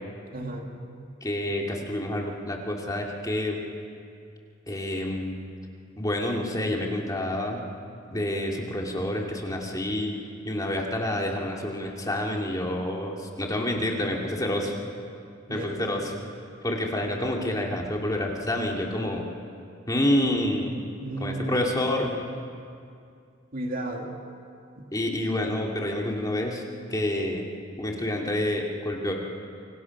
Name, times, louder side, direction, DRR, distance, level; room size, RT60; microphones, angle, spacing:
voice 1, 0.3-0.7 15.5-16.0 21.0-21.7 23.5-24.2 24.8-24.9, right 1 dB, 45° right, 2 dB, 2.4 m, -33 dB
voice 2, 1.2-3.6 4.7-5.4 6.0-7.6 8.1-10.1 10.4-14.7 15.5-16.1 16.6-19.2 19.9-20.7 21.2-22.2 24.9-26.6 26.9-27.4 27.8-29.1, left 1 dB, 20° left, 0 dB, 2.5 m, -28 dB
28.5 x 25.5 x 6.0 m, 2.4 s
head